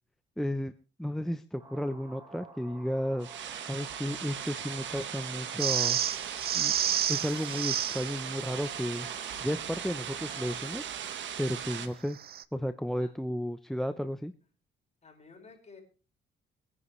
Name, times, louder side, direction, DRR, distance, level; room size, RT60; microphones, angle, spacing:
voice 1, 0.4-0.7 1.0-3.3 3.7-6.0 6.5-6.7 7.1-9.1 9.4-10.8 11.4-12.2 12.5-14.3, equal, ahead, 9 dB, 0.7 m, -33 dB
sound 1, 1.6-10.6, right 2 dB, 20° right, 4.4 m, -51 dB
sound 2, 3.2-11.9, right 9 dB, 70° right, 1.4 m, -38 dB
sound 3, 5.6-8.1 12.2-12.4, right 9 dB, 50° right, 0.7 m, -29 dB
voice 2, 15.0-15.8, left 4 dB, 35° left, 2 dB, 5.3 m, -53 dB
23.5 x 9.7 x 3.2 m, 0.35 s
cardioid pair, 90°, 20 cm